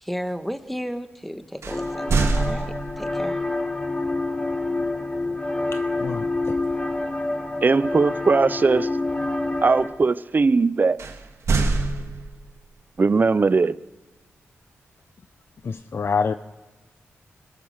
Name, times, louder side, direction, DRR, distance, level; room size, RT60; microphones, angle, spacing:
voice 1, 0.0-3.4, equal, 5° left, 1.3 m, -33 dB
sound 1, 1.6-3.3 6.0-6.3 6.7-7.0 11.0-12.6, right 3 dB, 75° right, 1.7 m, -25 dB
sound 2, 1.7-9.9, left 2 dB, 25° left, 3.4 m, -27 dB
voice 2, 5.7-6.6 15.6-16.3, left 5 dB, 55° left, 0.6 m, -27 dB
voice 3, 7.6-8.9 9.6-11.0 13.0-13.8, right 4 dB, 40° right, 0.6 m, -19 dB
22.0 x 8.8 x 6.5 m
wide cardioid pair, 85°, 5 cm